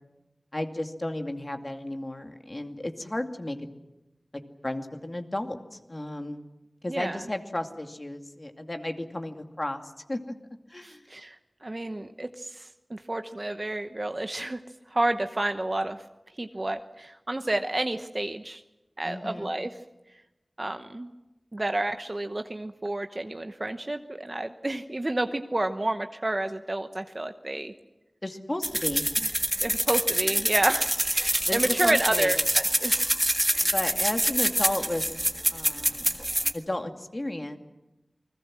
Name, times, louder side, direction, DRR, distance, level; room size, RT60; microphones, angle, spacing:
voice 1, 0.5-3.7 4.6-6.5 6.8-9.8 10.1-10.3 10.7-11.1 19.0-19.5 28.2-29.1 31.4-32.4 33.6-35.0 35.5-36.2 36.5-37.6, left 1 dB, 35° left, 5 dB, 2.4 m, -33 dB
voice 2, 6.9-7.2 10.8-14.6 14.9-16.0 16.4-18.6 19.0-19.7 20.6-21.1 21.5-27.7 29.6-33.1 33.5-33.7, right 1 dB, 35° right, 7 dB, 1.0 m, -30 dB
sound 1, 28.6-36.5, right 1 dB, 15° right, 1.7 m, -26 dB
29.0 x 21.0 x 7.6 m, 1.0 s
wide cardioid pair, 55°, 0 cm